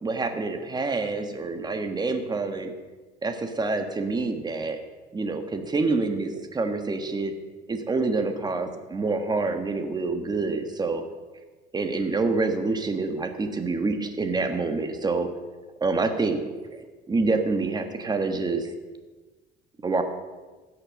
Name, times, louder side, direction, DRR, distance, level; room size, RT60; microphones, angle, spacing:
voice 1, 0.0-2.7 3.2-4.8 5.1-7.3 7.7-11.0 11.7-15.3 15.8-16.4 16.7-18.7 19.8-20.0, right 3 dB, 25° right, 7 dB, 1.5 m, -27 dB
16.5 x 6.6 x 6.4 m, 1.3 s
cardioid pair, 110°, 17 cm